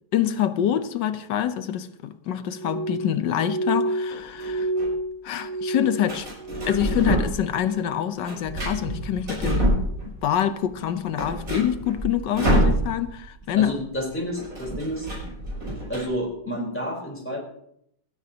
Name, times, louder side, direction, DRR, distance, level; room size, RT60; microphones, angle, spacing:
voice 1, 0.1-4.7 5.2-6.3 6.7-13.7, left 10 dB, 65° left, 1.4 m, -26 dB
Glass, 2.5-7.1 7.4-8.0 8.4-9.0 9.6-9.8, right 2 dB, 60° right, 2.3 m, -30 dB
sound 1, 4.1-4.9 6.1-7.5 7.8-10.3 10.7-10.8 11.0-13.3 13.5-13.7 13.9-16.0, right 1 dB, 40° right, 6.8 m, -26 dB
voice 2, 13.6-15.1 15.9-17.4, equal, 5° left, 3.8 m, -30 dB
28.5 x 9.6 x 2.8 m
omnidirectional pair, 2.2 m